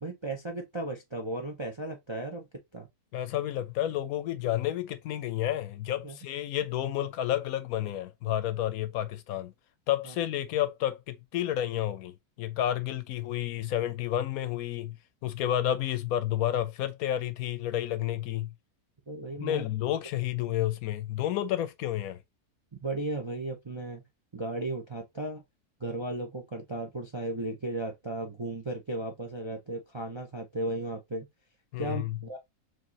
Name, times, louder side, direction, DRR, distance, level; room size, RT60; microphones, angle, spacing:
voice 1, 0.0-2.5 2.7-2.9 6.0-6.2 10.0-10.1 19.1-19.6 22.8-24.0 24.3-25.4 25.8-31.3 31.8-32.4, right 2 dB, 30° right, 0.5 m, -35 dB
voice 2, 3.1-9.5 9.9-14.9 15.2-18.5 19.4-22.2 31.7-32.2, left 12 dB, 75° left, 1.0 m, -30 dB
4.6 x 3.0 x 2.8 m
omnidirectional pair, 1.6 m